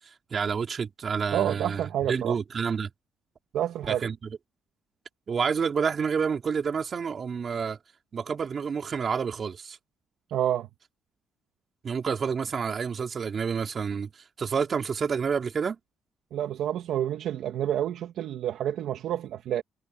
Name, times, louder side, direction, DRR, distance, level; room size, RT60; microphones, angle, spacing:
voice 1, 0.3-2.9 3.9-4.2 5.3-7.8 8.1-9.8 11.8-14.1 14.4-15.8, right 6 dB, 40° right, 4.4 m, -29 dB
voice 2, 1.3-2.4 3.5-4.0 10.3-10.7 16.3-19.6, right 11 dB, 75° right, 2.2 m, -28 dB
cardioid pair, 120°, 0 cm